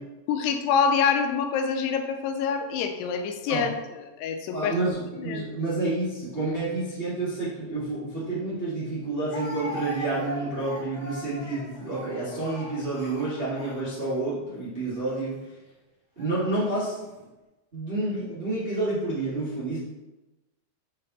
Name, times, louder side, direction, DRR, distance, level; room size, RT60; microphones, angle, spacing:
voice 1, 0.3-4.7 5.2-5.4, left 6 dB, 90° left, 6 dB, 2.8 m, -26 dB
voice 2, 4.5-15.4 16.1-17.0 17.7-19.8, right 2 dB, 30° right, -10 dB, 1.0 m, -29 dB
Speech, 8.2-8.3 9.3-14.2 15.0-15.2 16.2-16.7, right 1 dB, 45° left, 2.4 m, -39 dB
7.5 x 4.2 x 3.9 m, 1.1 s
omnidirectional pair, 4.6 m